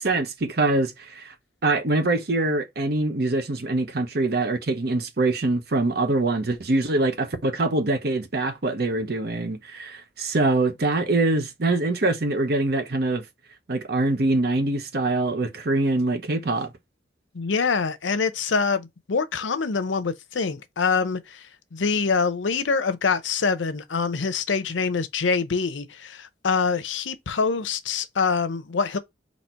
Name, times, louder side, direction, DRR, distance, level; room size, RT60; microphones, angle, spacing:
voice 1, 0.0-1.3 1.6-13.2 13.7-16.7, right 2 dB, 55° right, 0.9 m, -24 dB
voice 2, 17.3-29.0, left 5 dB, 85° left, 0.6 m, -25 dB
4.2 x 2.8 x 4.4 m
head